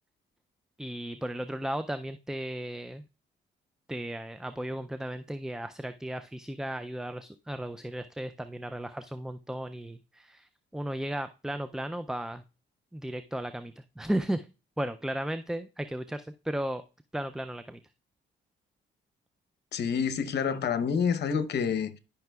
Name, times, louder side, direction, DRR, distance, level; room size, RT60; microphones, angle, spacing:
voice 1, 0.8-3.0 3.9-12.4 12.9-14.5 14.8-16.8 17.1-17.8, right 1 dB, 5° right, 0.3 m, -35 dB
voice 2, 19.7-22.0, left 6 dB, 55° left, 0.9 m, -28 dB
12.5 x 5.8 x 2.3 m
cardioid pair, 90°, 20 cm